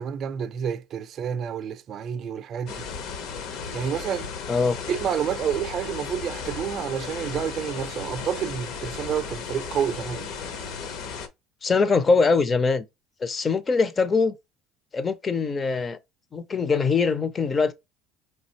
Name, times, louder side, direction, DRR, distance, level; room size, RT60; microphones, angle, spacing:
voice 1, 0.0-2.9 3.7-4.3 4.9-10.3, right 8 dB, 35° right, 0.5 m, -29 dB
sound 1, 2.7-11.3, left 5 dB, 60° left, 0.8 m, -35 dB
voice 2, 11.6-12.9 13.2-14.3 14.9-16.0 16.3-17.7, left 4 dB, 20° left, 0.5 m, -22 dB
4.8 x 3.3 x 2.9 m
cardioid pair, 145°, 0 cm